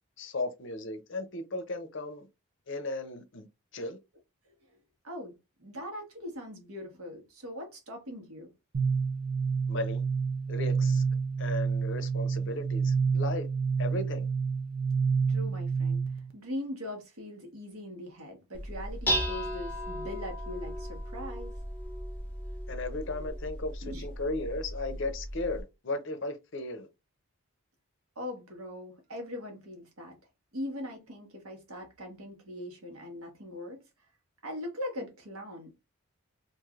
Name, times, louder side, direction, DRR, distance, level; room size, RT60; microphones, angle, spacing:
voice 1, 0.2-2.3 2.7-3.5 3.7-4.0 9.7-10.0 10.5-11.0 11.4-13.5 13.8-14.3 22.7-26.9, left 2 dB, 55° left, 0.5 m, -35 dB
voice 2, 5.0-8.5 15.3-16.0 16.3-21.5 23.8-24.1 28.2-30.2 30.5-33.8 34.4-35.7, left 1 dB, 85° right, 1.2 m, -41 dB
sound 1, 8.7-16.3, right 5 dB, 45° right, 0.5 m, -28 dB
Dishes pots and pans, 18.5-25.6, equal, 10° left, 0.6 m, -36 dB
3.1 x 2.5 x 2.4 m
head